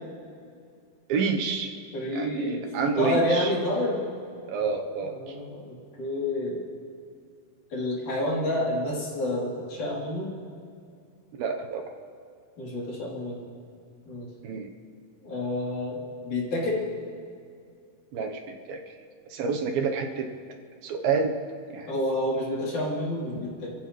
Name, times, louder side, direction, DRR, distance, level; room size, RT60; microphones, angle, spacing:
voice 1, 1.1-1.7 2.1-3.5 4.5-5.4 11.3-11.8 14.4-14.7 18.1-18.8 19.3-20.3 20.8-21.4 21.7-21.9, right 5 dB, 75° right, 3 dB, 2.8 m, -28 dB
voice 2, 1.9-2.6 3.0-4.0 5.1-6.6 7.7-10.3 12.6-13.4 14.1-14.3 15.2-16.9 21.9-23.7, left 1 dB, 55° left, -5 dB, 4.6 m, -29 dB
29.5 x 15.0 x 3.2 m, 2.3 s
omnidirectional pair, 4.4 m